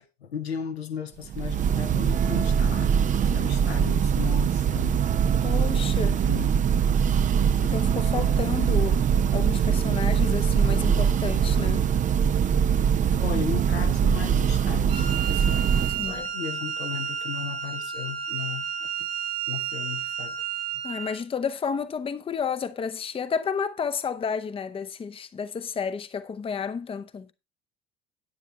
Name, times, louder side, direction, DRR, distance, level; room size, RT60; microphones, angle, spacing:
voice 1, 0.2-2.9 3.2-5.0 5.4-5.5 6.3-6.6 12.8-15.7 16.0-19.1 19.5-20.4, left 8 dB, 75° left, 1.2 m, -36 dB
Church bell, 1.3-16.2, right 7 dB, 25° right, 0.6 m, -23 dB
voice 2, 5.4-6.2 7.6-9.0 9.3-11.9 15.9-16.3 20.8-27.3, left 6 dB, 15° left, 0.8 m, -31 dB
Wind instrument woodwind instrument, 14.9-21.2, right 8 dB, 70° right, 2.4 m, -32 dB
10.5 x 9.2 x 3.3 m
figure-of-eight pair, 65°, 32 cm